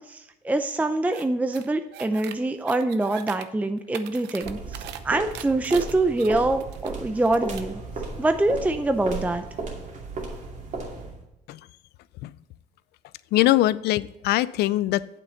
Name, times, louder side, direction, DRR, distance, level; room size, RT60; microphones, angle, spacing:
voice 1, 0.1-7.8 8.2-9.4, right 2 dB, 10° right, 8 dB, 0.5 m, -25 dB
sound 1, 1.1-1.2 1.5-2.3 2.7-3.4 3.8-5.0 5.3-6.9 7.2-7.7, right 10 dB, 90° right, 0.8 m, -40 dB
sound 2, 4.4-11.2, right 3 dB, 45° right, 2.5 m, -35 dB
voice 2, 13.3-15.2, left 15 dB, 75° left, 18 dB, 0.5 m, -22 dB
8.7 x 7.6 x 3.9 m, 0.92 s
cardioid pair, 110°, 17 cm